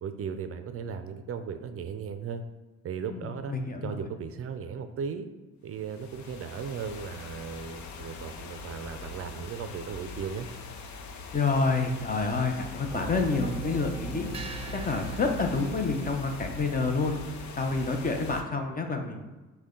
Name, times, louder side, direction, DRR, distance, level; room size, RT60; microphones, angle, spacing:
voice 1, 0.0-2.4 2.8-3.5 3.8-5.3 5.6-10.5, right 6 dB, 50° right, 9 dB, 0.4 m, -36 dB
voice 2, 3.1-4.0 11.3-14.4 14.7-19.3, left 3 dB, 30° left, 4 dB, 0.6 m, -28 dB
sound 1, 5.7-18.4, left 4 dB, 70° left, 0.6 m, -43 dB
sound 2, 12.9-18.0, right 4 dB, 20° right, 0.7 m, -40 dB
6.3 x 2.2 x 3.7 m, 1.2 s
cardioid pair, 90°, 30 cm